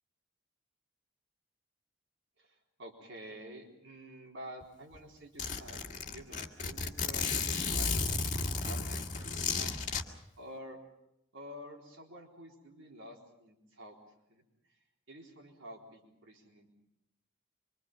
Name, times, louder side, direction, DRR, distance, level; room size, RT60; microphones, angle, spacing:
voice 1, 2.4-9.7 10.4-10.8 11.3-14.0 14.3-14.8 15.1-16.7, right 1 dB, 80° right, 0 dB, 4.0 m, -50 dB
Zipper (clothing), 4.6-4.7 4.9-5.0 5.4-10.0, left 4 dB, 40° left, 2.1 m, -33 dB
26.0 x 24.5 x 5.6 m, 0.86 s
head